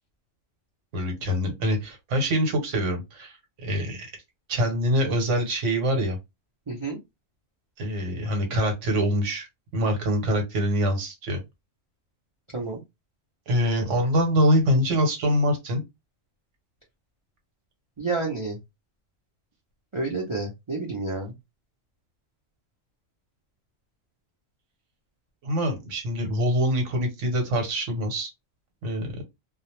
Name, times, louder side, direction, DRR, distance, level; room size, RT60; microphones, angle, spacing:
voice 1, 0.9-4.1 4.5-6.2 7.8-9.5 9.7-11.4 13.5-15.8 25.4-28.3 28.8-29.2, equal, 70° right, 1.1 m, -24 dB
voice 2, 6.7-7.0 12.5-12.8 18.0-18.6 19.9-21.3, right 3 dB, 40° right, 0.4 m, -29 dB
2.3 x 2.0 x 2.9 m
omnidirectional pair, 1.4 m